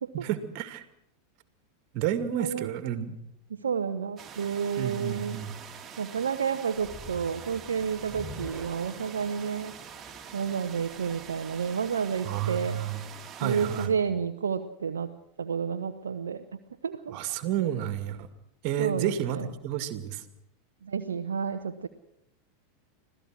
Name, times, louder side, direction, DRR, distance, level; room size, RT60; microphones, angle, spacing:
voice 1, 0.1-0.8 1.9-3.2 4.8-5.5 12.2-13.1 13.4-13.9 17.1-18.3 18.6-20.2, right 11 dB, 50° right, 10 dB, 2.3 m, -31 dB
voice 2, 2.4-2.7 3.6-5.4 6.0-9.7 10.3-12.8 13.4-15.1 15.4-16.4 16.8-17.2 18.8-19.5 20.8-21.9, right 6 dB, 75° right, 8 dB, 0.9 m, -30 dB
sound 1, 4.2-13.9, right 7 dB, 25° right, 2.6 m, -45 dB
sound 2, 6.8-12.0, equal, 5° right, 3.5 m, -47 dB
25.5 x 16.5 x 6.3 m, 0.80 s
figure-of-eight pair, 85°, 0 cm